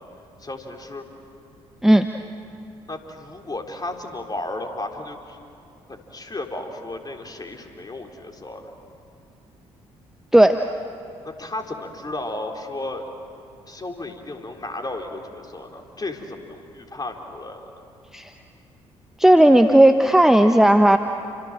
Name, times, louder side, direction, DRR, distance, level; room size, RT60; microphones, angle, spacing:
voice 1, 0.4-1.0 2.9-5.4 5.9-8.7 11.2-13.0 13.7-17.7, left 2 dB, 25° left, 2 dB, 4.1 m, -34 dB
voice 2, 19.2-21.0, right 1 dB, 5° right, 7 dB, 1.1 m, -14 dB
29.0 x 26.0 x 7.6 m, 2.8 s
figure-of-eight pair, 45°, 15 cm